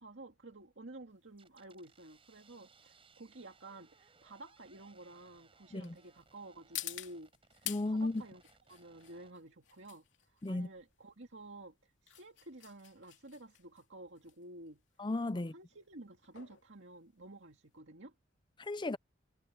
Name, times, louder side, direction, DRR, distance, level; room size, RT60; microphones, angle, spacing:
voice 1, 0.0-8.4 8.7-14.8 15.3-18.1, right 2 dB, 80° right, 2.1 m, -52 dB
sound 1, 1.1-17.8, left 14 dB, 90° left, 2.5 m, -50 dB
sound 2, 1.4-9.3, right 4 dB, 30° right, 6.1 m, -66 dB
voice 2, 7.7-8.2 10.4-10.7 15.0-15.5 18.6-19.0, left 2 dB, 25° left, 0.6 m, -34 dB
head